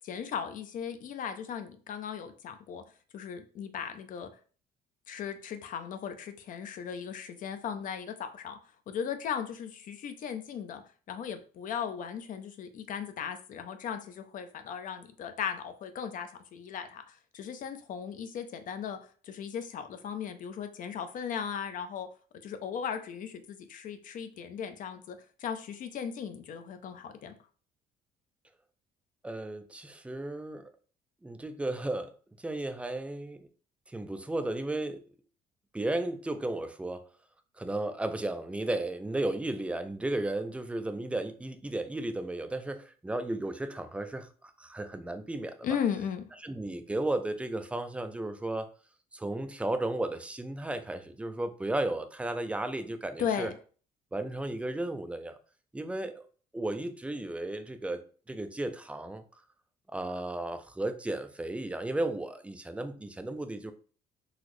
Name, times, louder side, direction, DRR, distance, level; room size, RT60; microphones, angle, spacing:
voice 1, 0.0-2.8 3.1-4.3 5.1-8.6 8.9-10.8 11.1-17.0 17.3-19.0 19.2-22.1 22.4-27.3 45.6-46.2 53.2-53.5, left 7 dB, 50° left, 8 dB, 0.5 m, -37 dB
voice 2, 29.2-30.7 31.2-32.1 32.4-33.5 33.9-35.0 35.7-37.0 37.6-45.7 46.4-48.7 49.1-53.5 54.1-55.4 55.7-56.3 56.5-58.0 58.3-59.2 59.9-63.7, right 2 dB, 5° right, 9 dB, 0.3 m, -34 dB
3.8 x 2.0 x 3.0 m, 0.40 s
cardioid pair, 110°, 17 cm